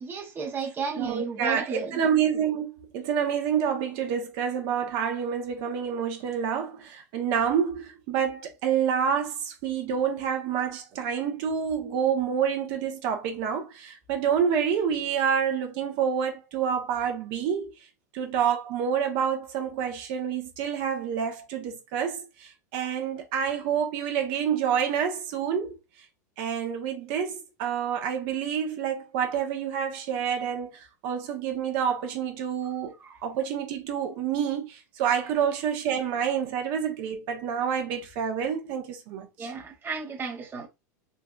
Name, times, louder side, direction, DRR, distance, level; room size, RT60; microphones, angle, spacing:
voice 1, 0.0-2.0 33.0-33.2 39.4-40.7, right 5 dB, 20° right, 0.7 m, -33 dB
voice 2, 1.0-17.7 18.1-25.7 26.4-32.9 33.2-39.5, right 8 dB, 55° right, 0.9 m, -28 dB
3.8 x 2.7 x 2.3 m
hypercardioid pair, 100°, 10 cm